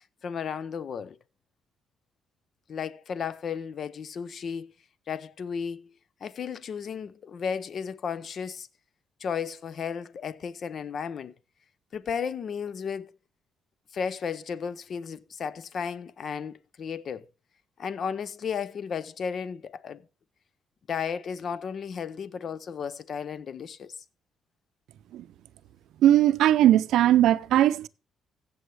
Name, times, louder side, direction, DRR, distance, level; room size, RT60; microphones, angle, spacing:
voice 1, 0.2-1.2 2.7-4.7 5.1-5.9 6.2-8.7 9.2-11.3 11.9-13.1 13.9-17.3 17.8-20.0 20.9-24.0, left 6 dB, 55° left, 0.6 m, -34 dB
voice 2, 26.0-27.9, right 12 dB, 80° right, 0.5 m, -19 dB
16.0 x 7.0 x 3.3 m
cardioid pair, 90°, 0 cm